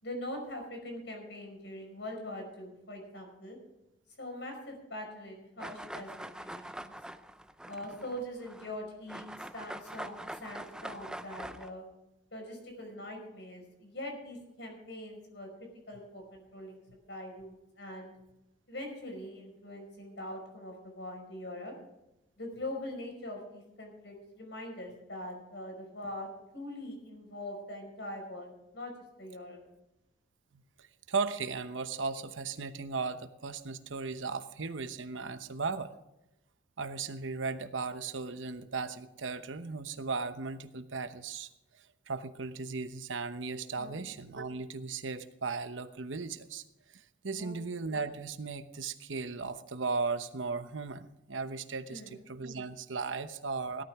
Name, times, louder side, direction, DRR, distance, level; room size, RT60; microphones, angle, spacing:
voice 1, 0.0-3.6 4.2-6.9 7.7-11.8 12.3-16.8 17.1-18.1 18.7-21.7 22.4-26.3 26.5-28.9 29.2-29.6 43.8-44.0 47.3-47.6 51.9-52.3, left 1 dB, 65° left, 2 dB, 5.4 m, -43 dB
sound 1, 5.6-8.8 9.1-11.7, right 1 dB, 5° right, 0.4 m, -44 dB
voice 2, 30.5-35.9 36.8-41.5 42.1-46.6 46.9-53.8, right 4 dB, 80° right, 9 dB, 1.0 m, -36 dB
17.5 x 12.5 x 3.6 m, 0.91 s
head